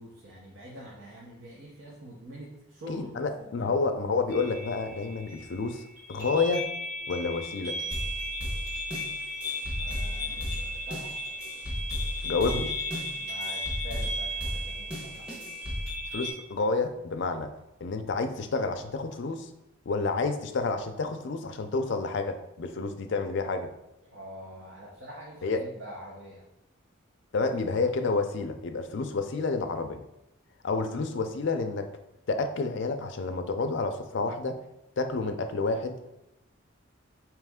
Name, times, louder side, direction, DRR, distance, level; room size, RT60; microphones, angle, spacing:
voice 1, 0.0-3.5 9.8-11.3 13.2-15.5 24.1-26.4, equal, 60° right, -4 dB, 0.8 m, -45 dB
voice 2, 2.9-5.8 6.1-6.7 7.1-7.8 12.2-12.7 16.1-17.5 17.8-19.5 19.9-23.7 25.4-25.6 27.3-30.0 30.6-31.9 32.3-34.6 35.0-36.0, left 3 dB, 55° left, 6 dB, 0.4 m, -29 dB
sound 1, 4.3-16.3, equal, 30° right, 1.6 m, -36 dB
sound 2, 7.9-15.9, left 1 dB, 5° right, 1.0 m, -35 dB
4.1 x 3.0 x 3.6 m, 0.90 s
head